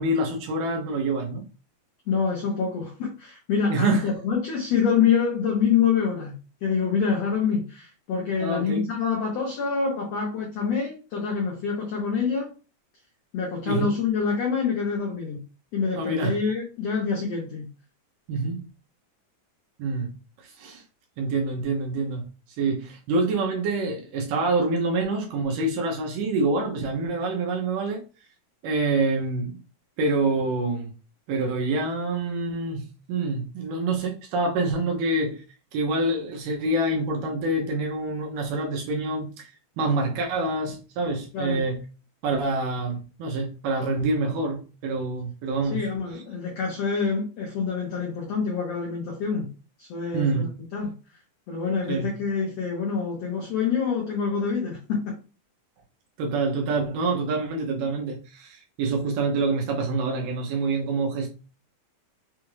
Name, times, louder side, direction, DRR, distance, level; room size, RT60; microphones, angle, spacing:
voice 1, 0.0-1.4 3.7-4.1 8.4-8.9 13.7-13.9 16.0-16.4 18.3-18.6 19.8-20.1 20.4-20.8 21.2-22.3 22.6-28.0 28.6-29.6 30.0-30.9 31.3-35.4 35.7-41.8 42.2-45.8 46.1-46.2 50.1-50.5 51.9-52.1 56.2-61.3, right 2 dB, 75° right, 2.1 m, -26 dB
voice 2, 2.1-6.3 6.6-12.5 13.3-15.4 15.7-17.6 41.3-41.6 45.7-49.5 49.8-50.9 51.5-55.1, left 6 dB, 75° left, 1.5 m, -26 dB
6.0 x 2.4 x 3.1 m
omnidirectional pair, 4.3 m